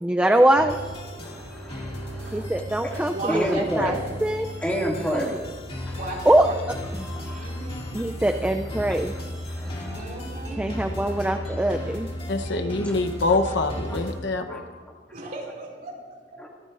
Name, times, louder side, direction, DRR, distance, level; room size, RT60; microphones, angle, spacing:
voice 1, 0.0-0.8 2.3-4.5 5.1-5.3 6.3-6.5 7.9-9.1 10.6-12.1, right 1 dB, 5° right, 5 dB, 0.4 m, -22 dB
sound 1, 0.6-14.2, equal, 30° left, 2.3 m, -35 dB
voice 2, 1.1-2.5 2.8-3.0 3.3-4.0 4.6-5.4 5.9-6.0 7.0-7.7 8.2-8.3 8.9-9.2 9.5-10.0 11.0-12.0 12.8-13.0 13.9-14.0 14.5-14.9 16.4-16.5, equal, 10° left, -2 dB, 2.3 m, -32 dB
voice 3, 2.2-2.7 3.1-3.9 5.9-6.5 7.2-7.8 9.6-10.6 15.1-15.9, right 2 dB, 50° right, -2 dB, 4.3 m, -35 dB
voice 4, 12.3-14.6, left 3 dB, 65° left, 7 dB, 1.0 m, -25 dB
25.0 x 14.0 x 2.6 m, 1.5 s
head